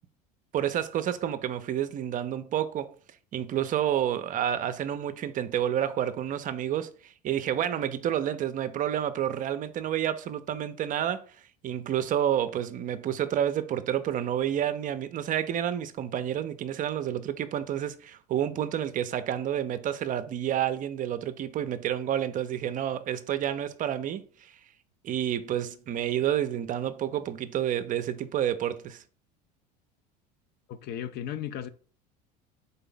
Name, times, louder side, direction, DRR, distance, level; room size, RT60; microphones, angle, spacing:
voice 1, 0.5-2.9 3.3-6.9 7.2-11.3 11.6-24.5 25.0-29.0, right 10 dB, 40° right, 0.5 m, -29 dB
voice 2, 30.7-31.7, left 10 dB, 50° left, 0.5 m, -35 dB
3.9 x 3.3 x 3.8 m
hypercardioid pair, 80°, 21 cm